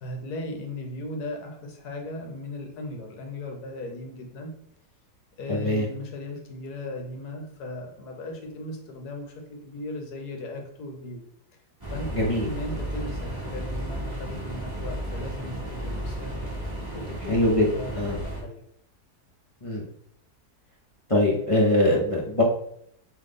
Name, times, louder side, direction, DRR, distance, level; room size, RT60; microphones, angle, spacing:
voice 1, 0.0-4.5 5.4-11.2 11.9-12.0 12.4-16.4 16.9-17.3 17.7-18.6, left 2 dB, 75° left, 2 dB, 1.4 m, -37 dB
voice 2, 5.5-5.9 12.1-12.5 17.3-17.7 17.9-18.2 19.6-19.8 21.1-22.4, left 1 dB, 35° left, -4 dB, 0.5 m, -22 dB
sound 1, 11.8-18.4, right 1 dB, 15° right, 1.0 m, -33 dB
3.6 x 3.2 x 3.8 m, 0.71 s
omnidirectional pair, 1.7 m